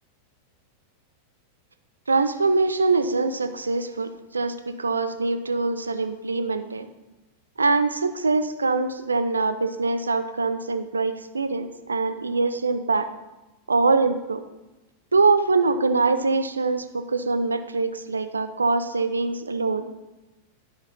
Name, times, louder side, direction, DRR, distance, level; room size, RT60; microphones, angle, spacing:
voice 1, 2.1-6.9 7.6-13.1 13.7-14.4 15.1-19.9, right 3 dB, 75° right, 10 dB, 0.6 m, -23 dB
11.5 x 6.0 x 4.2 m, 1.0 s
figure-of-eight pair, 90°, 0 cm